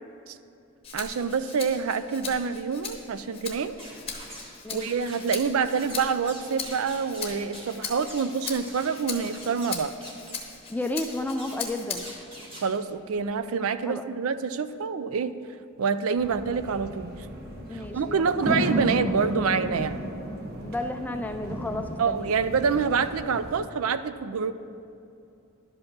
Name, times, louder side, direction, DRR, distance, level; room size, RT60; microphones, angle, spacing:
Rattle (instrument), 0.8-12.3 12.7-13.9, left 6 dB, 25° left, 0.9 m, -39 dB
voice 1, 0.9-3.7 4.7-9.9 12.6-15.3 15.8-17.2 17.7-20.1 22.0-24.5, right 5 dB, 75° right, 13 dB, 0.4 m, -27 dB
sound 1, 3.8-4.5 4.8-10.5 11.0-11.6 11.9-12.7, equal, 25° right, 1.9 m, -44 dB
voice 2, 10.7-12.1 13.8-14.0 17.7-18.6 20.6-22.3, left 2 dB, 5° left, 6 dB, 0.3 m, -32 dB
sound 2, 16.2-23.6, equal, 45° right, 1.2 m, -34 dB
11.5 x 5.4 x 6.0 m, 2.7 s
head